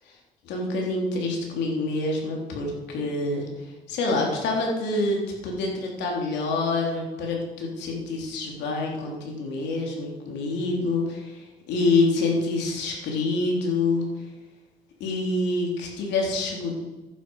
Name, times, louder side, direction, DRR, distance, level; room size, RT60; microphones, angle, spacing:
voice 1, 0.4-14.1 15.0-16.7, left 3 dB, 85° left, 0 dB, 3.4 m, -26 dB
11.0 x 9.5 x 5.5 m, 1.1 s
cardioid pair, 140°, 18 cm